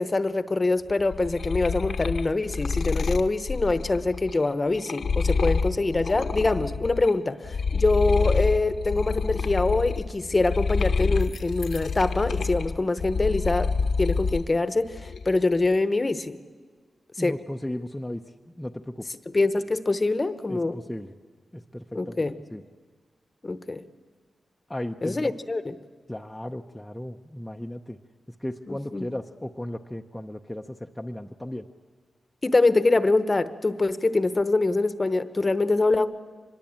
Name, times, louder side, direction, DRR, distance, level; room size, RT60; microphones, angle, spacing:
voice 1, 0.0-13.7 14.0-16.4 17.2-17.4 19.3-20.8 21.9-22.4 23.4-23.8 25.0-25.8 28.7-29.1 32.4-36.1, left 3 dB, 25° left, 12 dB, 1.0 m, -24 dB
sound 1, 0.9-7.1 7.4-14.5 14.9-15.5, left 4 dB, 70° left, 1.0 m, -27 dB
voice 2, 17.2-18.2 18.6-19.1 20.5-21.1 21.5-22.2 22.5-22.6 24.7-25.3 26.1-28.0 28.4-31.7, left 1 dB, 5° left, 2 dB, 0.7 m, -35 dB
24.5 x 21.5 x 8.7 m, 1.5 s
wide cardioid pair, 100°, 0 cm